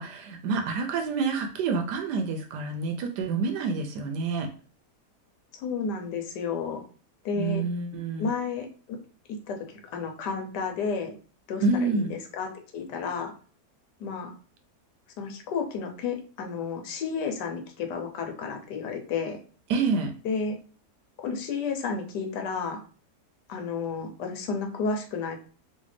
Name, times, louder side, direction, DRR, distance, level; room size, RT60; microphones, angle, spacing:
voice 1, 0.0-4.5 7.4-8.3 11.6-12.1 19.7-20.1, right 4 dB, 85° right, 5 dB, 1.2 m, -28 dB
voice 2, 5.5-6.8 7.2-7.6 8.2-9.0 9.3-11.1 11.5-13.3 14.0-14.3 15.2-19.4 20.2-20.6 21.2-22.8 23.5-25.4, left 5 dB, 85° left, 4 dB, 1.3 m, -32 dB
3.2 x 2.7 x 3.2 m, 0.41 s
omnidirectional pair, 1.7 m